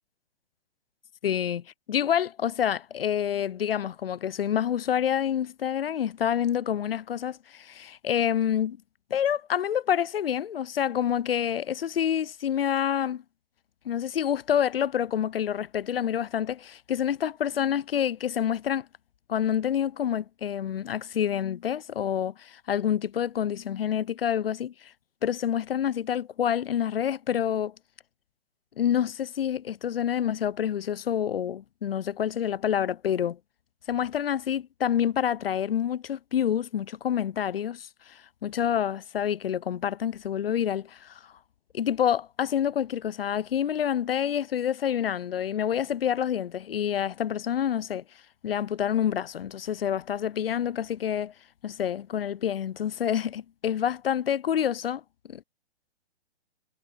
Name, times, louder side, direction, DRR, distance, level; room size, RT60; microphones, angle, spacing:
voice 1, 1.2-8.8 9.1-13.2 13.9-18.9 19.3-24.9 25.2-27.7 28.8-33.4 33.9-41.2 41.7-48.0 48.4-51.3 51.6-55.0 55.3-55.4, left 9 dB, 60° left, 0.5 m, -27 dB
figure-of-eight pair, 115°, 33 cm